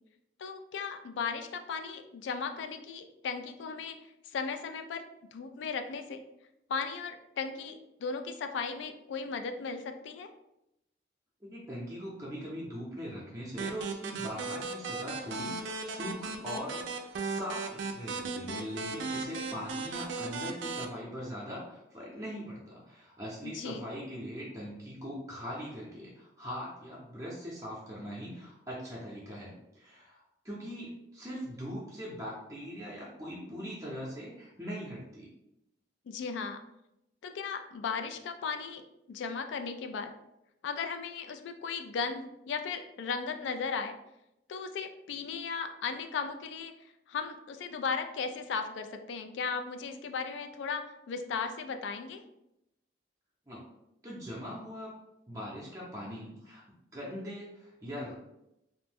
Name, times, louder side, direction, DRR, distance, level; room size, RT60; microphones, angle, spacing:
voice 1, 0.4-4.0 4.3-5.0 5.3-6.2 6.7-10.3 23.4-23.8 36.1-36.6 37.2-38.8 39.1-40.1 40.6-43.9 44.5-46.7 47.1-52.2, left 5 dB, 90° left, 7 dB, 0.3 m, -36 dB
voice 2, 11.4-35.3 53.5-53.6 54.0-54.9 55.3-56.6 56.9-58.1, equal, 20° right, -6 dB, 0.5 m, -41 dB
sound 1, 13.6-20.9, right 3 dB, 90° right, 0.3 m, -37 dB
2.5 x 2.1 x 3.4 m, 0.87 s
head